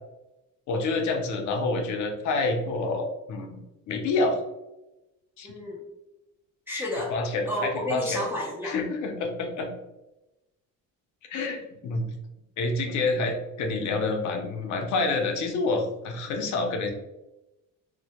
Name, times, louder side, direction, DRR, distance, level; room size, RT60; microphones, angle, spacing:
voice 1, 0.7-3.6 3.9-4.4 5.4-5.5 7.1-8.2 8.6-9.7 11.3-12.1 12.6-16.9, left 3 dB, 65° left, 4 dB, 0.5 m, -28 dB
voice 2, 5.4-5.8 6.7-7.1 7.4-8.7, left 1 dB, 5° right, -5 dB, 0.4 m, -31 dB
2.1 x 2.1 x 2.8 m, 0.97 s
cardioid pair, 150°, 32 cm